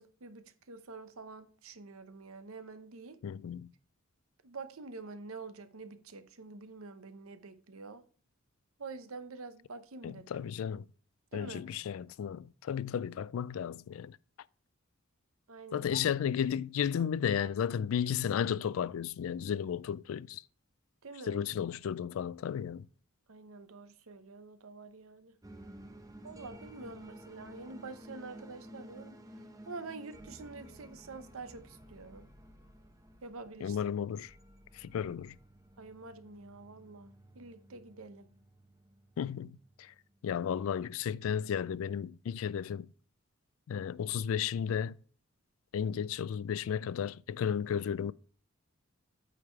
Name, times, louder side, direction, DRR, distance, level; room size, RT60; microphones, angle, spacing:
voice 1, 0.0-3.2 4.4-8.0 8.8-10.5 11.3-11.6 15.5-16.0 16.9-17.1 21.0-21.4 23.3-25.3 26.2-29.2 29.7-32.2 33.2-33.8 35.8-38.3, right 3 dB, 80° right, 0.8 m, -47 dB
voice 2, 3.2-3.7 10.0-10.8 11.3-14.2 15.7-20.4 21.3-22.9 33.6-34.3 34.7-35.4 39.2-39.9 40.2-42.9 43.7-44.9 45.7-48.1, left 8 dB, 70° left, 0.3 m, -33 dB
sound 1, 25.4-40.5, equal, 15° right, 0.9 m, -53 dB
8.8 x 4.9 x 4.6 m
head